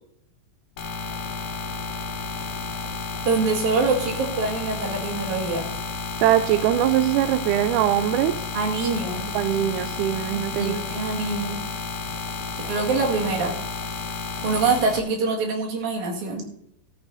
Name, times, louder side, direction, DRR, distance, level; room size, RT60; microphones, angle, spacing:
sound 1, 0.8-15.0, left 4 dB, 70° left, 3.1 m, -32 dB
voice 1, 3.3-5.7 8.5-9.3 10.6-11.6 12.7-13.5 14.4-16.4, right 3 dB, 60° right, -1 dB, 3.2 m, -24 dB
voice 2, 6.2-8.3 9.3-10.7, right 12 dB, 80° right, 12 dB, 1.8 m, -21 dB
14.5 x 14.0 x 2.7 m, 0.75 s
omnidirectional pair, 3.9 m